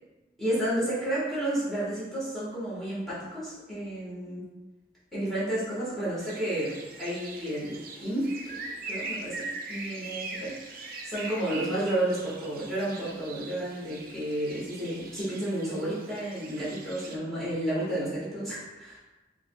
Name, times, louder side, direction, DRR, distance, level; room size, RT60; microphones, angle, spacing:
voice 1, 0.4-4.4 5.1-8.6 8.9-10.6 11.0-19.0, right 1 dB, ahead, -11 dB, 1.4 m, -31 dB
sound 1, 6.2-17.2, right 3 dB, 50° right, 0.4 m, -41 dB
4.6 x 2.4 x 2.3 m, 1.1 s
head